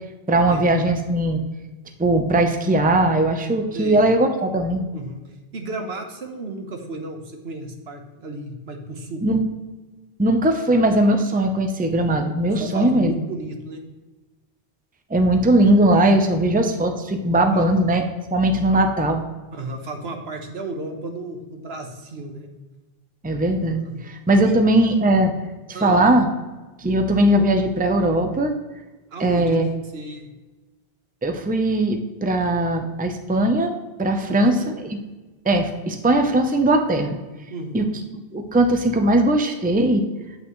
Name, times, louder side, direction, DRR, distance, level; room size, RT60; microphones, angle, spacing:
voice 1, 0.3-1.4 2.0-4.8 9.2-9.4 10.2-13.1 15.1-18.0 18.3-19.2 23.2-25.3 25.8-26.3 26.8-28.5 29.2-29.6 31.2-33.7 34.0-34.7 35.4-37.2 37.7-37.8 38.3-40.0, right 1 dB, 10° right, 5 dB, 0.6 m, -19 dB
voice 2, 4.9-9.2 12.6-13.8 17.5-17.7 18.7-18.9 19.5-22.5 23.8-24.1 24.4-24.6 25.7-26.1 29.1-30.3 34.2-34.7 37.5-38.0, right 2 dB, 80° right, 4 dB, 1.4 m, -34 dB
8.9 x 8.3 x 3.1 m, 1.2 s
omnidirectional pair, 1.0 m